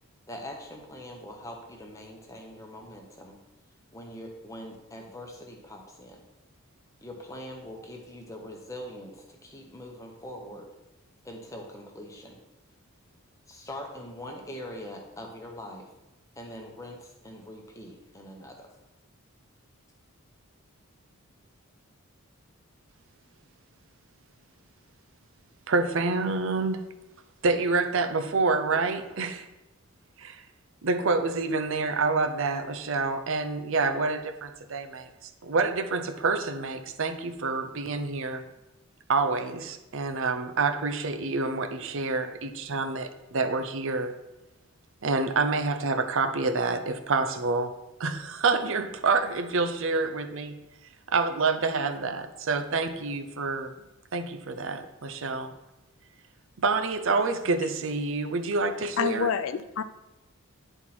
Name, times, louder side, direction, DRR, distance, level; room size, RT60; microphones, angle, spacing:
voice 1, 0.3-3.4 3.9-6.2 7.0-10.7 11.2-12.4 13.5-15.9 16.4-18.7, left 1 dB, 15° left, 1 dB, 1.0 m, -42 dB
voice 2, 25.7-26.8 27.4-29.5 30.2-30.4 30.8-38.5 39.1-44.1 45.0-47.7 48.0-50.5 51.1-53.7 54.1-55.5 56.6-59.3, right 3 dB, 60° right, 8 dB, 0.6 m, -27 dB
voice 3, 59.0-59.8, left 6 dB, 60° left, 11 dB, 0.4 m, -27 dB
10.0 x 4.5 x 4.3 m, 0.97 s
head